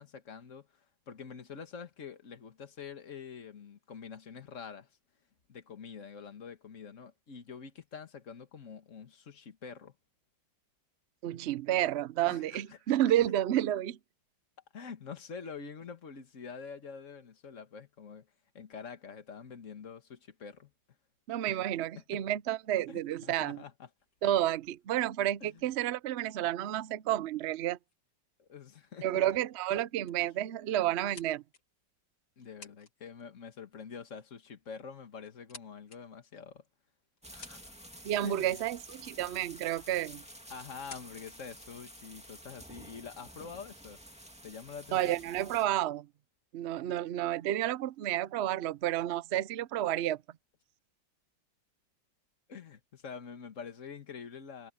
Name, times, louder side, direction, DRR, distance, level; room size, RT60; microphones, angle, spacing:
voice 1, 0.0-5.0 5.5-9.9 12.2-13.0 14.7-18.3 18.5-20.7 21.5-21.6 22.0-22.2 22.9-23.9 25.4-25.7 28.4-29.1 32.4-36.6 37.3-37.7 38.2-38.6 40.5-44.0 44.4-45.2 52.5-54.7, left 6 dB, 45° left, 2.0 m, -46 dB
voice 2, 11.2-14.0 21.3-23.6 24.2-27.8 29.0-31.4 38.0-40.2 44.9-46.1 46.5-50.2, right 13 dB, 85° right, 0.5 m, -30 dB
sound 1, 24.0-26.6 27.5-27.6 27.9-28.1 28.7-29.0 29.3-29.4 29.7-30.2 30.7-31.9 32.4-32.9 33.2-33.5 34.5-34.6 35.1-36.0 36.6-36.7 37.2-38.0 39.3-39.4 39.9-40.2 40.7-41.3, left 5 dB, 65° left, 3.1 m, -54 dB
sound 2, 37.2-45.6, equal, 5° right, 2.1 m, -51 dB
omnidirectional pair, 2.0 m